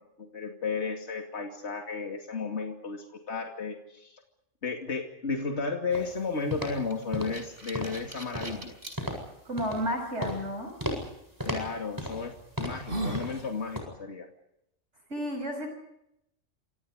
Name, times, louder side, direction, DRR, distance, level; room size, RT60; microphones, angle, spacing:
voice 1, 0.2-4.2 4.6-8.8 11.4-14.3, left 4 dB, 60° left, 2 dB, 2.8 m, -33 dB
sound 1, 5.9-6.1 6.5-6.8 7.1-7.5 7.7-8.0 8.3-8.7 9.0-9.3 9.6-9.9 10.2-10.5 10.8-11.1 11.4-12.3 12.6-12.9 13.1-13.4 13.8-13.9, equal, 15° right, 7.9 m, -35 dB
sound 2, 6.9-9.0 9.6-9.7 11.4-11.6 12.2-12.3 12.6-13.3, right 1 dB, 45° right, 5.7 m, -37 dB
voice 2, 9.4-10.8 15.1-15.7, equal, 60° right, 4 dB, 6.3 m, -32 dB
28.5 x 26.0 x 5.0 m, 0.82 s
omnidirectional pair, 1.3 m